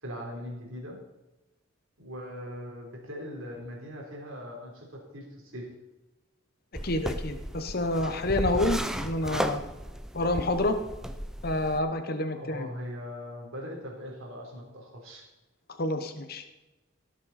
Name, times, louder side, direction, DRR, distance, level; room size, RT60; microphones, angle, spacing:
voice 1, 0.0-1.0 2.0-5.7 12.4-15.2, equal, 75° right, -1 dB, 3.6 m, -40 dB
sound 1, 6.7-11.8, equal, 5° right, 0.5 m, -34 dB
voice 2, 6.8-9.6 10.1-10.8 11.4-12.7 15.8-16.4, left 1 dB, 45° left, 7 dB, 1.0 m, -28 dB
17.0 x 7.4 x 4.3 m, 1.1 s
head